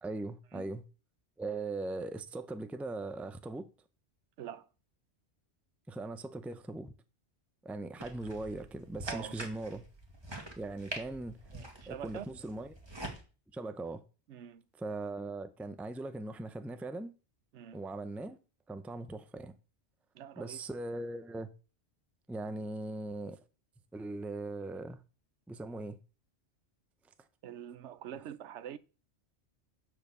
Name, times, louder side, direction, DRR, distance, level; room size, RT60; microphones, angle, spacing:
voice 1, 0.0-0.8 1.4-3.7 5.9-6.9 7.6-9.8 10.6-11.4 11.9-12.7 13.5-14.0 14.8-17.1 17.7-18.4 18.7-19.5 20.4-21.5 22.3-23.4 23.9-25.0 25.5-26.0, right 2 dB, ahead, 0.4 m, -39 dB
voice 2, 4.4-4.7 9.0-9.3 11.5-12.3 14.3-14.6 17.5-17.8 20.1-20.6 27.4-28.8, right 9 dB, 85° right, 1.0 m, -45 dB
sound 1, 8.0-13.2, right 1 dB, 25° right, 1.9 m, -45 dB
10.5 x 5.1 x 6.8 m
omnidirectional pair, 1.2 m